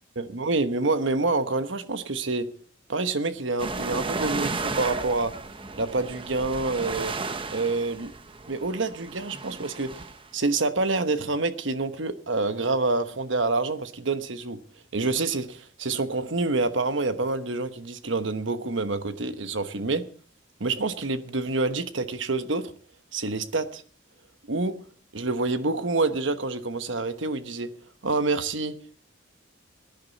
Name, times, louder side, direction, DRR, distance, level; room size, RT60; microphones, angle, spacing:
voice 1, 0.2-2.5 2.9-5.3 5.8-7.1 7.5-8.1 8.5-10.0 10.3-14.6 14.9-20.0 20.6-22.7 23.1-23.8 24.5-24.8 25.1-27.7 28.0-28.7, right 3 dB, 75° right, 11 dB, 1.1 m, -27 dB
sound 1, 3.6-10.2, right 3 dB, 25° right, 0.8 m, -34 dB
19.5 x 10.5 x 4.1 m, 0.43 s
head